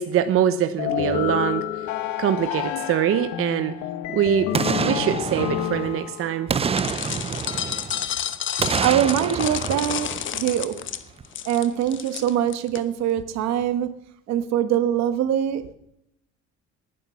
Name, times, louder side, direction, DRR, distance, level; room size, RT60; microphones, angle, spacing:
voice 1, 0.0-1.6 2.2-3.7 4.1-4.5 4.8-6.5, right 10 dB, 50° right, 10 dB, 0.9 m, -23 dB
sound 1, 0.8-6.5, left 12 dB, 80° left, 1.3 m, -29 dB
Boom, 4.5-6.1 6.5-8.1 8.6-10.8 11.2-11.3, right 6 dB, 20° right, 0.5 m, -28 dB
sound 2, 6.8-12.8, left 10 dB, 40° left, 1.0 m, -30 dB
voice 2, 8.8-10.8 11.4-13.9 14.3-15.7, right 10 dB, 65° right, 11 dB, 1.5 m, -23 dB
18.5 x 10.0 x 5.8 m, 0.79 s
cardioid pair, 140°, 29 cm